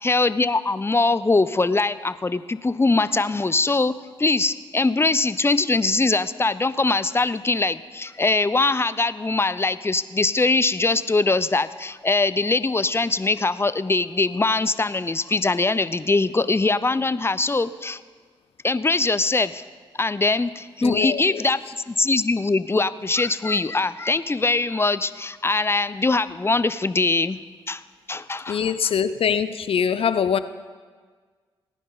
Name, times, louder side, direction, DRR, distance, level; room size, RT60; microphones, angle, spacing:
voice 1, 0.0-18.0 18.6-19.6 20.0-21.6 21.9-27.4 27.7-27.8 28.1-28.7, left 3 dB, 20° left, 16 dB, 0.6 m, -22 dB
voice 2, 20.8-21.4 28.5-30.4, left 7 dB, 60° left, 13 dB, 0.7 m, -23 dB
17.5 x 10.0 x 4.0 m, 1.5 s
hypercardioid pair, 40°, 11 cm